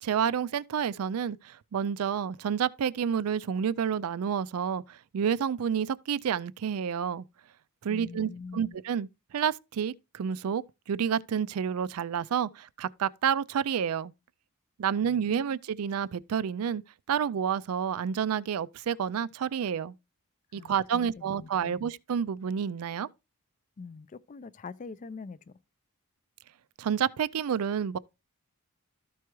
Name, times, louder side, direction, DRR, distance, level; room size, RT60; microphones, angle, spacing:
voice 1, 0.0-4.8 5.1-7.2 7.8-9.1 9.3-10.6 10.9-14.1 14.8-16.8 17.1-19.9 20.5-23.1 26.8-28.0, right 7 dB, 75° right, 0.4 m, -29 dB
voice 2, 7.9-8.8 15.0-15.4 20.5-21.8 23.8-25.5, left 4 dB, 35° left, 0.3 m, -44 dB
13.0 x 4.6 x 3.0 m
head